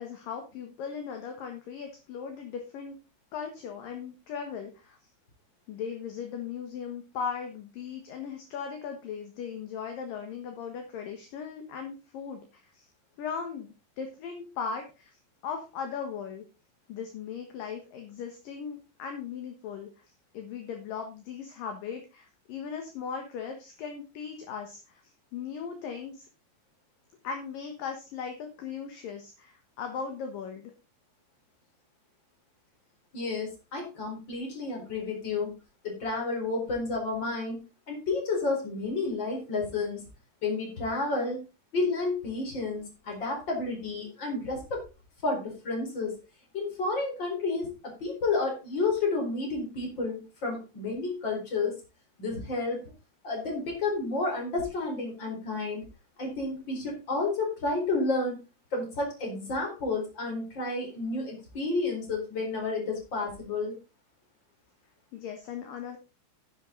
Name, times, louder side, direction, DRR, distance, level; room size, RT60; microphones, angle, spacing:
voice 1, 0.0-3.0 3.3-5.0 5.7-12.9 13.2-15.1 15.4-16.4 16.9-19.9 20.3-25.0 25.3-26.3 27.2-30.7 65.1-66.0, left 6 dB, 60° left, 4 dB, 2.6 m, -38 dB
voice 2, 33.1-35.5 35.8-37.6 37.9-40.0 40.4-41.4 41.7-44.8 45.2-46.2 46.5-51.8 52.2-52.8 53.2-55.8 56.2-58.4 58.7-63.8, left 3 dB, 25° left, 1 dB, 4.5 m, -31 dB
10.5 x 9.2 x 3.9 m, 0.30 s
omnidirectional pair, 5.5 m